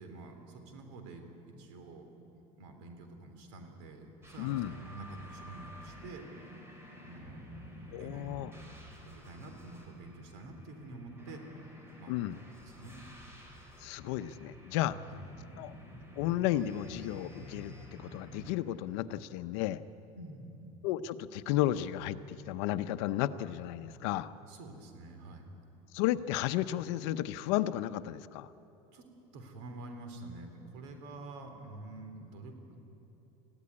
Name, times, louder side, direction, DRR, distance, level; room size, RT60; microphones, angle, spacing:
voice 1, 0.0-2.1 2.6-6.5 6.9-7.5 8.0-11.4 12.0-12.2 12.5-13.0 14.9-15.2 20.2-20.6 24.5-25.5 28.9-29.0 29.3-32.8, right 2 dB, 85° right, 6 dB, 3.5 m, -48 dB
sound 1, 4.2-18.6, equal, 15° right, 4.1 m, -51 dB
voice 2, 4.4-4.7 7.9-8.5 12.1-12.4 13.8-15.0 15.6-15.7 16.2-19.8 20.8-24.3 25.9-28.5, left 13 dB, 80° left, 13 dB, 0.8 m, -33 dB
22.0 x 15.0 x 9.8 m, 3.0 s
cardioid pair, 135°, 14 cm